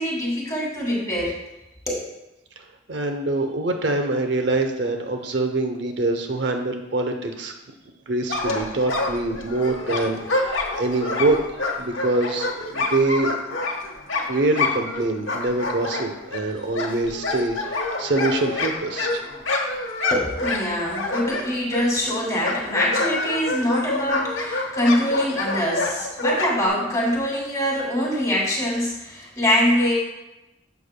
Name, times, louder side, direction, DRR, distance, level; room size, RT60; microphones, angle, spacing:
voice 1, 0.0-1.4 1.9-2.0 20.1-29.9, equal, 15° left, -4 dB, 2.5 m, -24 dB
voice 2, 2.9-7.5 8.1-13.4 14.3-19.2, right 2 dB, 65° right, 5 dB, 0.7 m, -25 dB
sound 1, 8.3-15.0 15.3-22.1 22.4-26.7, left 2 dB, 85° left, 1.1 m, -27 dB
11.5 x 6.9 x 2.2 m, 0.96 s
head